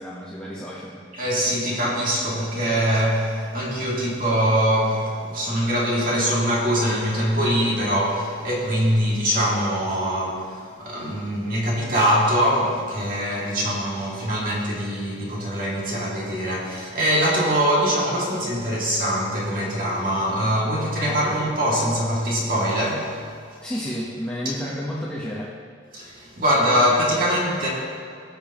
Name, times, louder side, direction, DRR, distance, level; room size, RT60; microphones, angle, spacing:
voice 1, 0.0-1.1 21.1-21.2 23.6-25.5, equal, 5° left, -8 dB, 1.0 m, -31 dB
voice 2, 1.2-23.2 25.9-27.7, equal, 45° right, -5 dB, 2.3 m, -23 dB
19.0 x 7.1 x 3.0 m, 2.4 s
head